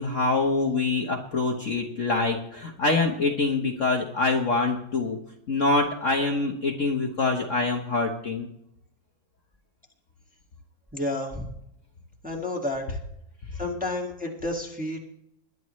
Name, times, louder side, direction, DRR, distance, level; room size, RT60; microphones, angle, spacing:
voice 1, 0.0-5.2 5.5-8.5, left 3 dB, 45° left, 1 dB, 1.3 m, -25 dB
voice 2, 10.9-11.5 12.2-13.0 13.6-15.0, left 2 dB, 5° right, 0 dB, 1.8 m, -30 dB
21.5 x 11.0 x 3.2 m, 0.76 s
omnidirectional pair, 2.1 m